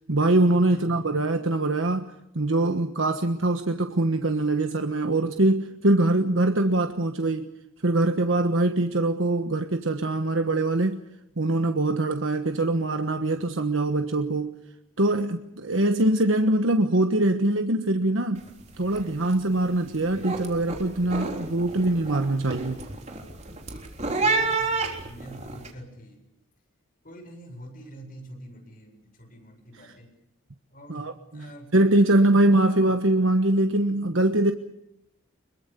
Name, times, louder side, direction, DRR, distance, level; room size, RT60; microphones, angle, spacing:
voice 1, 0.1-7.5 7.8-11.0 11.4-14.5 15.0-18.4 18.8-22.8 29.7-29.9 30.9-34.5, right 2 dB, 70° right, 1.3 m, -23 dB
voice 2, 0.7-1.0 24.2-24.7 25.0-26.2 27.0-30.1 30.7-32.3 32.7-32.8, equal, 40° left, 7.6 m, -45 dB
sound 1, 18.4-18.6 18.9-19.3 19.7-25.7, right 3 dB, 35° right, 3.6 m, -30 dB
25.0 x 22.5 x 6.9 m
head